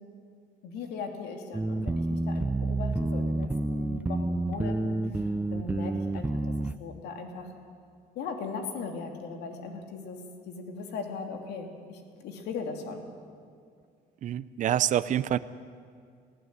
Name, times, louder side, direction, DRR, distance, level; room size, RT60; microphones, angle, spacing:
voice 1, 0.6-7.5 8.1-10.2 10.5-13.0, left 4 dB, 80° left, 4 dB, 2.8 m, -39 dB
sound 1, 1.5-6.8, right 2 dB, 10° right, 0.5 m, -29 dB
voice 2, 14.2-15.4, right 10 dB, 50° right, 15 dB, 0.6 m, -26 dB
18.5 x 15.5 x 9.5 m, 2.2 s
cardioid pair, 110°, 17 cm